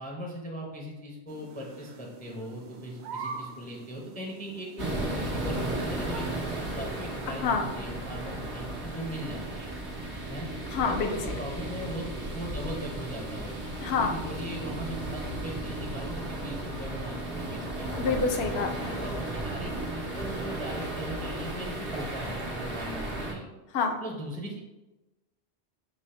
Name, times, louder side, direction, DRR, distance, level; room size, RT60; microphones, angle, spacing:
voice 1, 0.0-6.3 6.8-9.7 10.3-10.5 10.9-12.0 12.3-13.6 13.9-17.9 18.5-18.6 18.9-23.5 24.0-24.6, equal, 10° left, -1 dB, 0.4 m, -39 dB
sound 1, 1.3-14.5, right 4 dB, 55° right, 0.5 m, -47 dB
sound 2, 4.8-23.3, right 1 dB, 80° right, 1.3 m, -35 dB
voice 2, 10.7-11.3 13.8-14.2 18.0-19.0 23.7-24.0, left 5 dB, 70° left, 5 dB, 0.8 m, -28 dB
5.0 x 2.1 x 4.2 m, 1.0 s
omnidirectional pair, 1.1 m